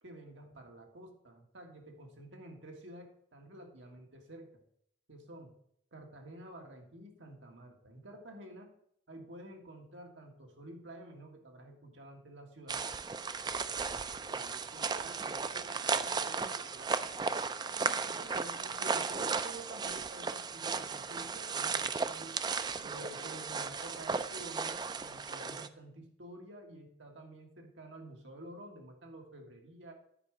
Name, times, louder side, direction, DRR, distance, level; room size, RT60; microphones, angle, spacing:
voice 1, 0.0-4.6 5.1-5.5 5.9-8.7 9.1-12.8 17.8-22.4 22.8-29.9, right 1 dB, 85° right, 2 dB, 1.7 m, -50 dB
sound 1, 12.7-25.7, right 5 dB, 25° right, 0.3 m, -35 dB
voice 2, 13.8-17.3, right 3 dB, 60° right, 6 dB, 1.0 m, -53 dB
10.0 x 4.8 x 6.2 m, 0.69 s
head